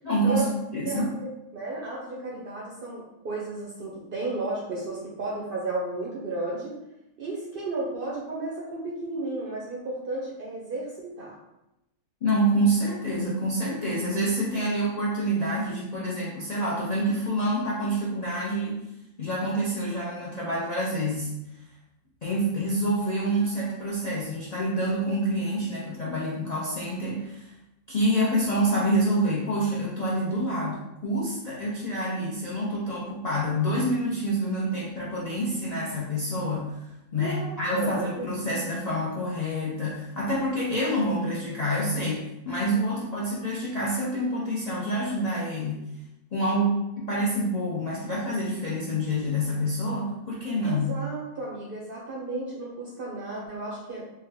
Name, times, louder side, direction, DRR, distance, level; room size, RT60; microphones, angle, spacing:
voice 1, 0.0-0.5 0.7-1.1 12.2-18.8 19.2-21.3 22.2-27.5 27.9-45.8 46.3-50.9, right 1 dB, 50° left, -6 dB, 0.4 m, -27 dB
voice 2, 1.5-6.8 7.2-11.3 37.1-38.7 50.6-54.1, right 2 dB, 60° right, -4 dB, 0.6 m, -33 dB
3.4 x 2.2 x 3.4 m, 0.91 s
omnidirectional pair, 1.5 m